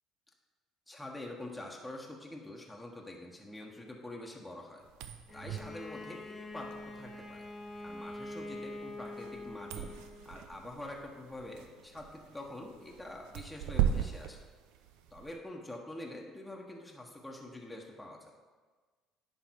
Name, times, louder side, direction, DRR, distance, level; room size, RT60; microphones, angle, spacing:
voice 1, 0.9-4.8 5.3-7.5 7.8-9.9 10.2-14.4 15.1-18.3, left 1 dB, 10° left, -1 dB, 1.2 m, -46 dB
sound 1, 4.8-15.3, right 10 dB, 75° right, 0.5 m, -39 dB
Bowed string instrument, 5.3-10.4, left 2 dB, 35° left, 1.0 m, -45 dB
10.0 x 3.4 x 4.6 m, 1.4 s
hypercardioid pair, 60°, 0 cm